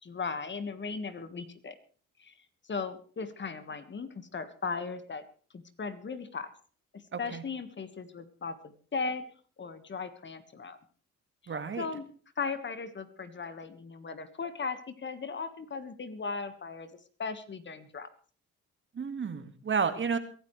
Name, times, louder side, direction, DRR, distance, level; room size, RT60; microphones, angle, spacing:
voice 1, 0.0-1.8 2.2-2.3 2.7-5.2 5.5-6.5 6.9-9.3 9.6-10.8 11.8-12.0 12.4-16.9 17.2-18.1, left 4 dB, 40° left, 10 dB, 1.6 m, -37 dB
voice 2, 7.1-7.4 11.5-11.9 18.9-20.2, right 6 dB, 40° right, 9 dB, 1.9 m, -31 dB
23.0 x 12.5 x 3.3 m, 0.42 s
cardioid pair, 90°, 30 cm